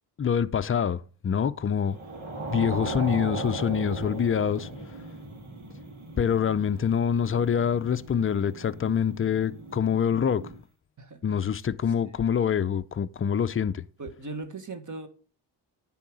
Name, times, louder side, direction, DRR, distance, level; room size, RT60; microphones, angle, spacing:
voice 1, 0.2-2.0 2.5-4.7 6.2-10.4 11.2-13.8, left 7 dB, 30° left, 0.5 m, -25 dB
sound 1, 1.9-10.6, right 2 dB, 80° right, 2.4 m, -38 dB
voice 2, 11.0-11.4 12.0-12.4 14.0-15.1, right 3 dB, 40° right, 1.6 m, -39 dB
9.9 x 3.9 x 6.1 m
cardioid pair, 85°, 48 cm